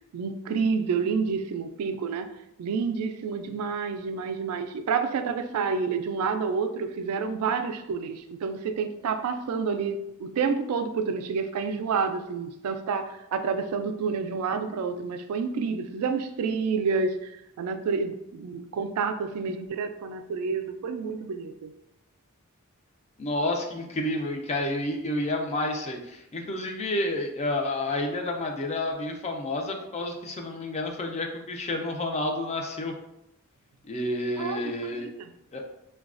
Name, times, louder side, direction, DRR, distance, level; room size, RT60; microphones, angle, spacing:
voice 1, 0.1-2.3 2.6-17.3 17.6-21.7 34.4-34.6 35.0-35.3, right 5 dB, 85° right, 9 dB, 0.3 m, -29 dB
voice 2, 23.2-32.9 33.9-35.1 35.5-35.6, left 1 dB, 30° left, 3 dB, 0.4 m, -30 dB
3.9 x 2.2 x 2.4 m, 0.86 s
head